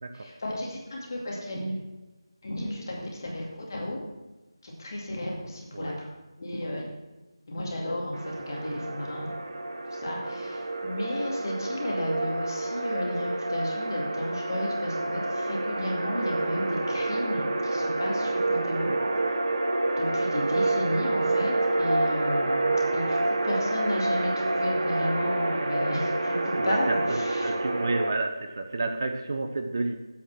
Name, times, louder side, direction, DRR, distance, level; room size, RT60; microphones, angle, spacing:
voice 1, 0.1-1.7 2.4-4.0 4.6-6.1 6.4-6.8 7.5-9.3 9.9-19.0 20.0-27.5, left 1 dB, 45° left, -2 dB, 2.3 m, -33 dB
sound 1, 8.1-28.1, right 2 dB, 60° right, 1.0 m, -28 dB
voice 2, 18.6-19.0 26.5-30.0, right 2 dB, 40° right, 6 dB, 0.7 m, -31 dB
8.0 x 6.3 x 6.1 m, 1.1 s
figure-of-eight pair, 170°, 3 cm